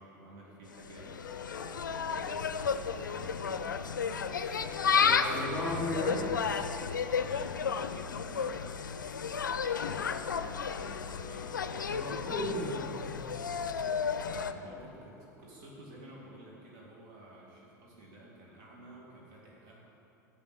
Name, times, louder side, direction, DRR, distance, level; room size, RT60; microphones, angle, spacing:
voice 1, 0.0-6.3 6.9-9.0 9.5-11.5 14.3-19.8, right 1 dB, 60° right, -4 dB, 2.3 m, -52 dB
Insect, 0.7-14.5, left 6 dB, 90° left, 0.4 m, -33 dB
sound 1, 0.8-16.0, left 11 dB, 40° left, 0.5 m, -51 dB
voice 2, 5.0-6.3 11.9-13.1, left 1 dB, 10° right, -5 dB, 2.6 m, -35 dB
7.5 x 7.1 x 7.8 m, 2.9 s
hypercardioid pair, 85°, 10 cm